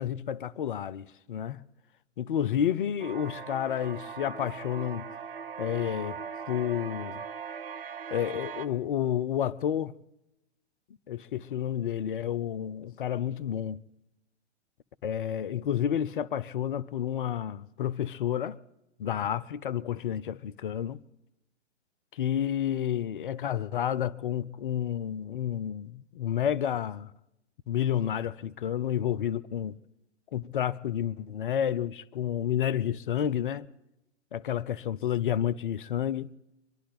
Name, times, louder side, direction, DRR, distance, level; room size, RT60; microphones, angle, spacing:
voice 1, 0.0-1.6 2.2-5.1 5.6-6.2 6.5-7.2 8.1-9.9 11.1-13.8 15.0-18.6 19.0-21.0 22.1-27.1 27.7-29.8 30.3-33.7 34.3-36.3, left 10 dB, 45° left, 0.6 m, -30 dB
sound 1, 3.0-8.7, right 6 dB, 50° right, 0.9 m, -40 dB
25.5 x 11.0 x 4.0 m
figure-of-eight pair, 115°, 35 cm